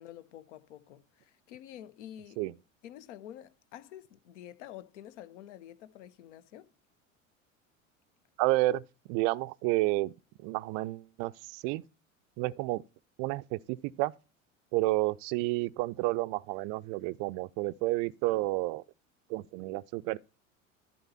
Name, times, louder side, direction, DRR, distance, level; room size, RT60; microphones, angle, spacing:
voice 1, 0.0-2.4 2.8-6.7, left 11 dB, 60° left, 0.9 m, -48 dB
voice 2, 8.4-8.8 9.1-10.1 10.4-11.8 12.4-12.8 13.2-14.1 14.7-18.8 19.3-20.2, right 19 dB, 40° right, 0.4 m, -30 dB
11.0 x 4.2 x 5.6 m
figure-of-eight pair, 75°, 40 cm